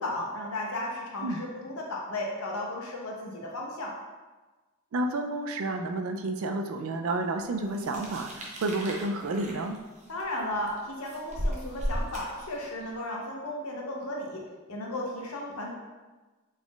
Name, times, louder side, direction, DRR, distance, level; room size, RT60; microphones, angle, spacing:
voice 1, 0.0-3.9 10.1-14.4 14.7-15.7, left 1 dB, 75° left, -1 dB, 0.8 m, -34 dB
voice 2, 4.9-9.8, right 2 dB, 70° right, 5 dB, 0.4 m, -30 dB
sound 1, 7.7-12.9, equal, 30° right, 0.6 m, -36 dB
4.1 x 3.7 x 2.3 m, 1.2 s
head